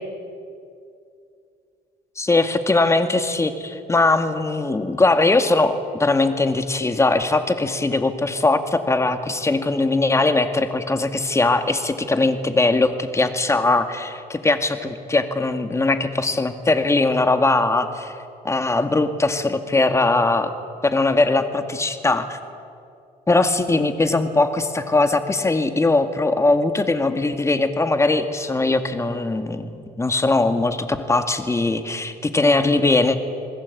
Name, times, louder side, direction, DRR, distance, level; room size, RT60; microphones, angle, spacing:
voice 1, 2.2-18.1 18.4-20.5 20.8-22.4 23.3-29.7 30.0-33.2, left 2 dB, 15° left, 8 dB, 2.1 m, -20 dB
28.5 x 20.0 x 8.5 m, 2.4 s
cardioid pair, 110°, 17 cm